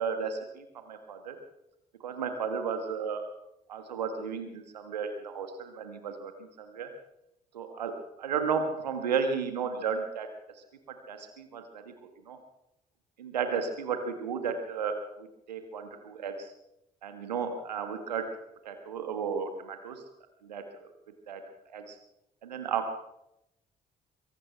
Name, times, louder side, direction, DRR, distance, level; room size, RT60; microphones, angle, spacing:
voice 1, 0.0-1.4 2.0-3.3 3.7-6.9 7.5-10.3 11.1-11.9 12.3-12.4 13.2-16.5 17.0-18.3 18.6-20.0 20.4-20.9 21.3-21.4 21.7-22.0 22.4-22.9, right 6 dB, 80° right, 7 dB, 1.7 m, -33 dB
23.5 x 17.5 x 3.4 m, 0.81 s
figure-of-eight pair, 40°, 21 cm